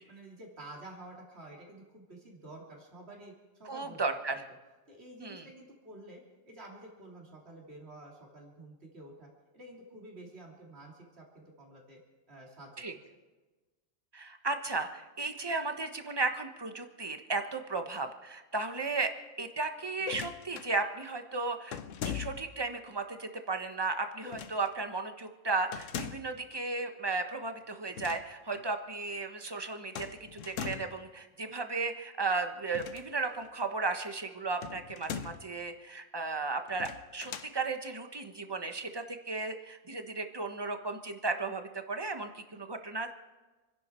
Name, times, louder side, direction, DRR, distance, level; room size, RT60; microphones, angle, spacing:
voice 1, 0.1-4.4 4.9-12.0 12.3-13.0, right 1 dB, 50° right, -2 dB, 3.4 m, -50 dB
voice 2, 3.7-4.4 5.2-5.5 12.8-12.9 14.1-19.1 19.4-21.8 22.0-43.1, right 3 dB, 20° right, 6 dB, 1.1 m, -35 dB
sound 1, 20.0-20.7 21.7-22.6 24.2-24.7 25.7-26.4 27.8-28.3 28.5-28.6 29.9-31.0 32.6-33.5 34.6-35.5 36.7-37.5, left 8 dB, 70° left, 1.1 m, -41 dB
28.0 x 11.0 x 4.5 m, 1.2 s
omnidirectional pair, 1.4 m